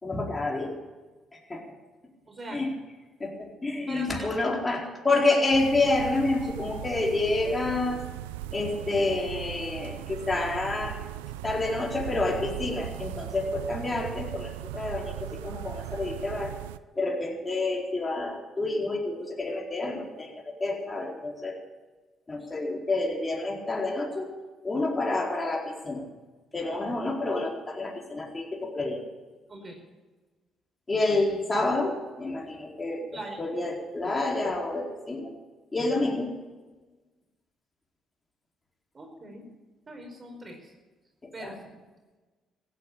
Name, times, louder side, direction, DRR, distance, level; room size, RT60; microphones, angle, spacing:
voice 1, 0.0-0.7 1.3-1.6 2.5-2.7 3.2-8.0 8.5-11.0 11.4-16.5 16.9-21.6 22.3-24.3 24.6-26.0 26.5-29.0 30.9-33.1 33.4-35.3 35.7-36.4 41.4-41.6, left 2 dB, 25° left, -1 dB, 4.4 m, -28 dB
voice 2, 2.3-2.6 3.9-4.6 29.5-29.8 33.1-33.4 38.9-39.4 39.9-40.7 41.3-41.8, right 2 dB, 35° right, 3 dB, 4.8 m, -42 dB
sound 1, 5.5-16.8, right 14 dB, 85° right, 0.4 m, -38 dB
16.0 x 9.4 x 8.7 m, 1.3 s
hypercardioid pair, 50°, 0 cm